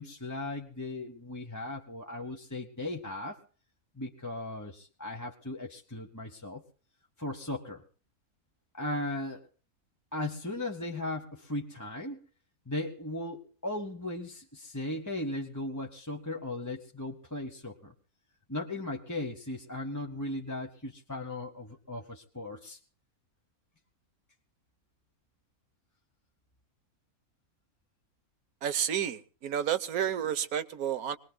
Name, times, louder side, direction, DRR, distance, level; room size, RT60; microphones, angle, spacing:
voice 1, 0.0-3.4 4.0-6.6 7.2-7.8 8.7-9.5 10.1-12.2 12.7-17.9 18.5-22.8, left 1 dB, 15° left, 1.0 m, -37 dB
voice 2, 28.6-31.2, right 9 dB, 80° right, 1.4 m, -31 dB
25.0 x 20.5 x 2.2 m
omnidirectional pair, 1.5 m